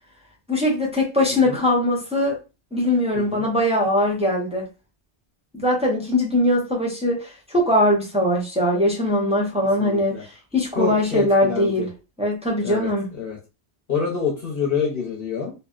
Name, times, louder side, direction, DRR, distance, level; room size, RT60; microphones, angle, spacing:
voice 1, 0.5-2.4 2.7-4.7 5.5-11.9 12.2-13.1, left 1 dB, 10° right, -2 dB, 0.5 m, -21 dB
voice 2, 9.8-10.2 10.8-11.9 12.6-12.9 13.2-13.4 13.9-15.5, left 6 dB, 60° left, -4 dB, 0.9 m, -26 dB
2.6 x 2.0 x 2.3 m, 0.29 s
omnidirectional pair, 1.1 m